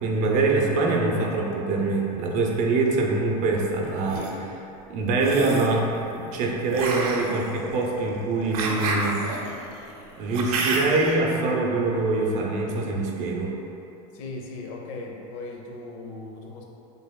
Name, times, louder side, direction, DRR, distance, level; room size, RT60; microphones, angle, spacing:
voice 1, 0.0-4.6 4.9-9.2 10.2-13.6, right 3 dB, 40° right, 0 dB, 0.6 m, -24 dB
sound 1, 3.8-4.3 5.2-5.8 6.7-11.1, right 3 dB, 85° right, 0.7 m, -29 dB
voice 2, 14.1-16.6, left 2 dB, 65° left, 0 dB, 0.7 m, -38 dB
6.3 x 3.3 x 2.2 m, 2.8 s
supercardioid pair, 155°, 19 cm